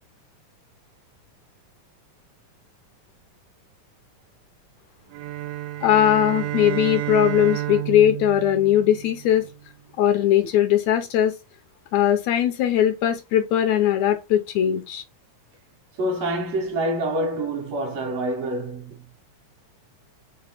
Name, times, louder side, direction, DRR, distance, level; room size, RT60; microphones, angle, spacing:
sound 1, 5.1-9.6, right 15 dB, 80° right, 1.8 m, -30 dB
voice 1, 5.8-9.4 10.0-11.3 11.9-15.0, left 11 dB, 75° left, 1.8 m, -20 dB
voice 2, 16.0-19.0, right 1 dB, 65° right, 1.9 m, -26 dB
5.0 x 3.0 x 3.3 m
omnidirectional pair, 3.5 m